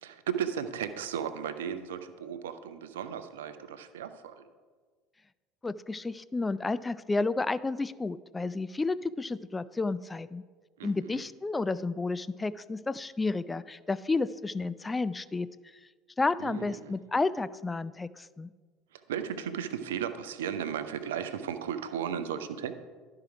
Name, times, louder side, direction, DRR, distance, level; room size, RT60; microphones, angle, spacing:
voice 1, 0.0-4.4 10.8-11.2 16.4-16.9 18.9-22.7, right 8 dB, 70° right, 10 dB, 0.5 m, -35 dB
voice 2, 5.6-10.4 10.8-15.5 16.2-18.5, left 3 dB, 15° left, 16 dB, 0.3 m, -31 dB
12.0 x 4.8 x 4.8 m, 1.5 s
figure-of-eight pair, 65°, 0 cm